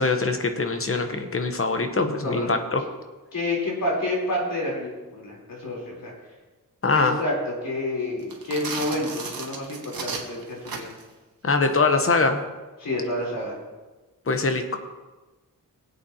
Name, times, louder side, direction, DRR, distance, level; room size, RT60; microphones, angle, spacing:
voice 1, 0.0-2.8 6.8-7.2 11.4-12.4 14.3-14.8, left 3 dB, 40° left, 6 dB, 1.0 m, -23 dB
voice 2, 3.3-6.1 6.9-10.9 12.8-13.5, left 1 dB, 70° left, -4 dB, 3.8 m, -29 dB
sound 1, 8.2-11.1, right 4 dB, 85° right, 1.6 m, -34 dB
19.5 x 8.4 x 2.9 m, 1.2 s
wide cardioid pair, 110°, 35 cm